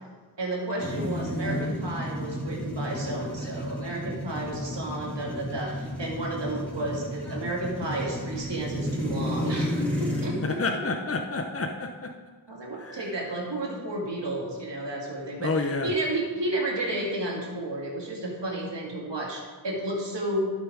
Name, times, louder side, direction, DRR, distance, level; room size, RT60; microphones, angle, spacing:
voice 1, 0.4-10.6 12.5-20.5, right 1 dB, 85° right, -2 dB, 2.3 m, -32 dB
sound 1, 0.8-10.3, equal, 5° left, 3.4 m, -32 dB
voice 2, 10.4-12.1 12.8-13.1 15.4-15.9, left 3 dB, 35° left, 4 dB, 0.9 m, -29 dB
11.5 x 7.8 x 4.7 m, 1.4 s
wide cardioid pair, 45°, 42 cm